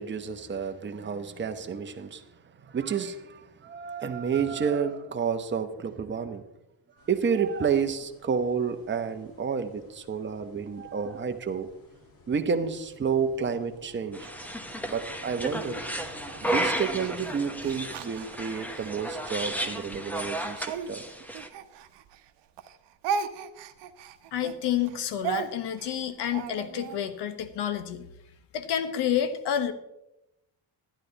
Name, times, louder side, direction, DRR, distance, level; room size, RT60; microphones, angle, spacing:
voice 1, 0.0-6.4 7.0-11.7 12.3-14.5 14.9-15.9 16.1-21.0, right 6 dB, 25° right, 0.9 m, -30 dB
sound 1, 7.0-17.8, left 3 dB, 55° left, 2.6 m, -52 dB
sound 2, 14.1-21.5, right 1 dB, 5° left, 1.0 m, -33 dB
Speech, 15.8-18.9 19.5-22.3 22.6-27.0, right 6 dB, 80° right, 0.9 m, -36 dB
voice 2, 24.3-28.1 28.5-29.7, left 9 dB, 75° left, 1.2 m, -29 dB
12.0 x 10.0 x 4.0 m
cardioid pair, 105°, 42 cm